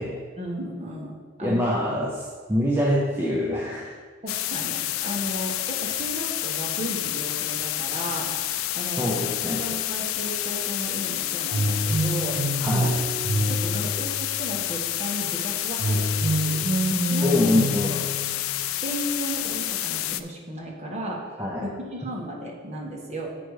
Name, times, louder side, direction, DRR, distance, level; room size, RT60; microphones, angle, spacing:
voice 1, 0.4-1.7 4.2-8.3 8.7-9.2 9.5-13.0 13.5-16.6 17.1-17.5 17.8-18.0 18.8-21.3 21.6-23.3, right 1 dB, 35° right, -2 dB, 1.5 m, -35 dB
voice 2, 1.4-3.9 9.0-9.6 12.6-13.0 17.2-18.0 21.4-21.7, left 1 dB, 10° right, -4 dB, 0.8 m, -25 dB
sound 1, 4.3-20.2, left 13 dB, 85° left, 0.4 m, -29 dB
sound 2, 11.5-14.6 15.8-18.7, right 1 dB, 90° right, 1.1 m, -26 dB
7.7 x 5.1 x 4.9 m, 1.5 s
head